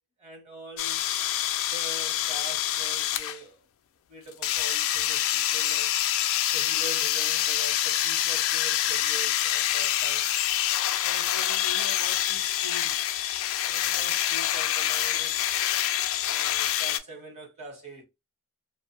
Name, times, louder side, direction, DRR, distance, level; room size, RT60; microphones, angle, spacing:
voice 1, 0.2-1.0 1.7-3.7 4.1-6.0 6.5-10.3 11.0-13.0 13.7-15.4 16.2-18.0, right 2 dB, 30° right, 0.9 m, -43 dB
sound 1, 0.8-3.4 4.4-17.0, left 12 dB, 65° left, 0.3 m, -26 dB
2.6 x 2.0 x 2.9 m
head